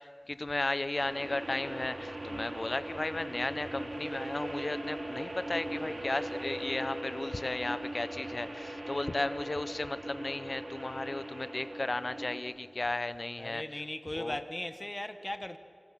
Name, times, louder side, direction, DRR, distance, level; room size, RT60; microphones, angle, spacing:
voice 1, 0.0-13.8 14.1-14.4, left 2 dB, 55° left, 0.9 m, -35 dB
sound 1, 0.9-12.4, right 1 dB, 60° right, 4.0 m, -40 dB
voice 2, 13.4-15.6, left 1 dB, 30° left, 1.6 m, -38 dB
29.0 x 26.5 x 6.0 m
wide cardioid pair, 50°, 0 cm